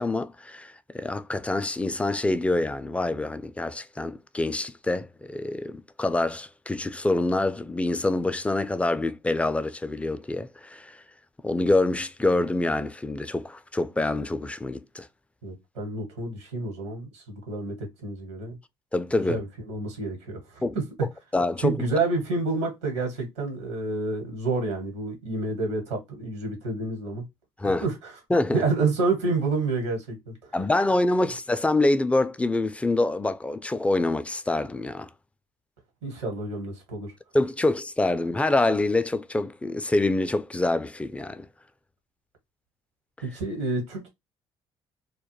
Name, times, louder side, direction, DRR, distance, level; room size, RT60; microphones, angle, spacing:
voice 1, 0.0-11.0 11.4-15.1 18.9-19.4 20.6-20.8 21.3-21.8 27.6-27.9 28.3-28.6 30.5-35.1 37.3-41.5, left 2 dB, 10° left, 0.3 m, -26 dB
voice 2, 15.4-18.6 19.3-20.6 21.6-27.2 27.6-28.1 28.5-30.5 36.0-37.1 43.2-44.1, right 3 dB, 85° right, 1.1 m, -29 dB
2.2 x 2.1 x 3.0 m
hypercardioid pair, 55°, 14 cm